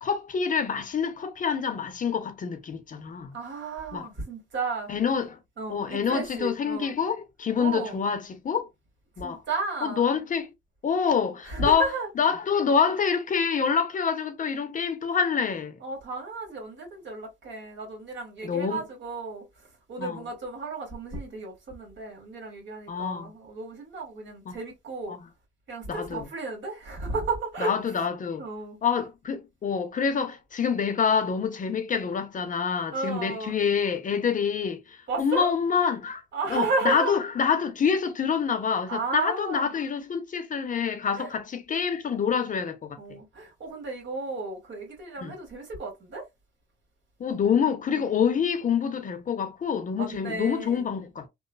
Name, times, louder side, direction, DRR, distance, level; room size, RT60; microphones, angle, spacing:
voice 1, 0.0-3.4 3.9-4.1 4.9-5.4 5.7-8.7 9.2-9.4 9.8-10.5 10.8-11.8 12.2-15.7 18.4-18.8 20.0-20.2 22.9-23.3 24.5-24.6 25.1-25.2 25.9-26.3 27.6-28.4 28.8-34.8 35.2-36.2 36.5-43.2 45.2-45.3 47.2-51.3, left 6 dB, 40° left, 0.6 m, -26 dB
voice 2, 3.3-4.9 5.6-6.9 7.6-8.0 9.2-10.1 11.4-12.1 15.8-19.5 19.9-25.2 25.7-27.7 28.4-28.8 32.9-33.5 35.1-35.5 36.3-37.1 38.9-39.7 41.1-41.3 43.0-46.2 47.9-48.1 49.9-50.9, right 3 dB, 65° right, 1.6 m, -33 dB
3.0 x 2.0 x 2.3 m
cardioid pair, 90°, 20 cm